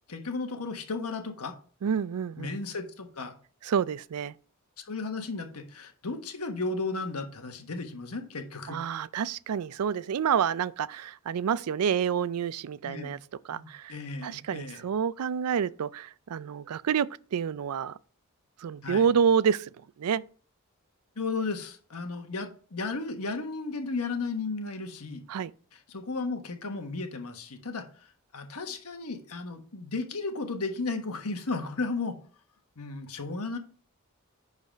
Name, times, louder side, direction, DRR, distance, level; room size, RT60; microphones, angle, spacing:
voice 1, 0.1-1.6 2.4-3.3 4.8-8.8 12.8-13.2 13.5-14.8 18.8-19.1 21.1-25.2 25.7-32.2 32.8-33.6, left 3 dB, 85° left, 1.4 m, -34 dB
voice 2, 1.8-2.5 3.6-4.4 8.7-13.2 13.5-13.9 14.2-18.0 18.6-19.7 20.0-20.2 25.3-25.5, right 7 dB, 85° right, 0.4 m, -28 dB
10.5 x 4.1 x 5.1 m
head